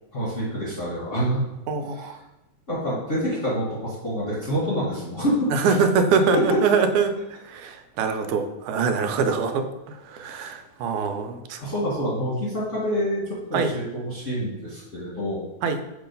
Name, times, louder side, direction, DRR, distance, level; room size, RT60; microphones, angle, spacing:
voice 1, 0.1-1.4 1.9-2.1 2.7-5.8 6.3-6.6 11.6-15.4, equal, 40° left, -8 dB, 1.2 m, -27 dB
voice 2, 1.7-2.2 5.5-7.1 7.4-11.6 13.5-13.7 15.6-15.8, right 5 dB, 90° right, 7 dB, 2.1 m, -24 dB
6.2 x 3.0 x 5.1 m, 0.96 s
omnidirectional pair, 3.4 m